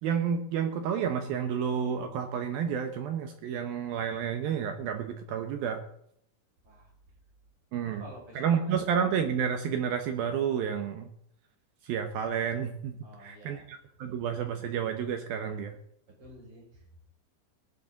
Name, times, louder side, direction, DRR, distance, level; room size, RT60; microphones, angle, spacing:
voice 1, 0.0-5.8 7.7-8.0 8.4-11.1 11.8-15.8, right 7 dB, 75° right, 6 dB, 2.2 m, -30 dB
voice 2, 7.8-8.8 13.0-13.6 16.1-17.0, right 1 dB, 30° right, -3 dB, 6.7 m, -50 dB
19.0 x 11.0 x 4.0 m, 0.71 s
omnidirectional pair, 5.4 m